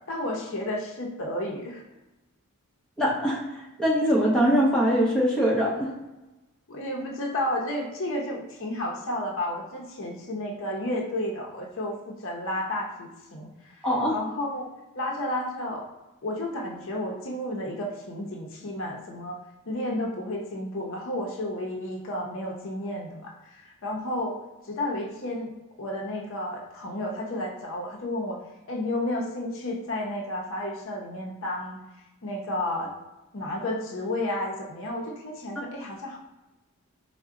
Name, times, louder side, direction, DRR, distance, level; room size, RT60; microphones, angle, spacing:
voice 1, 0.1-1.8 6.7-14.6 14.9-15.9 16.2-28.4 28.7-31.8 32.2-32.9 33.3-36.2, left 1 dB, 60° left, -1 dB, 0.7 m, -32 dB
voice 2, 3.0-3.4 3.8-5.9 13.8-14.2, equal, 5° left, -5 dB, 0.8 m, -22 dB
4.5 x 2.1 x 3.6 m, 1.0 s
head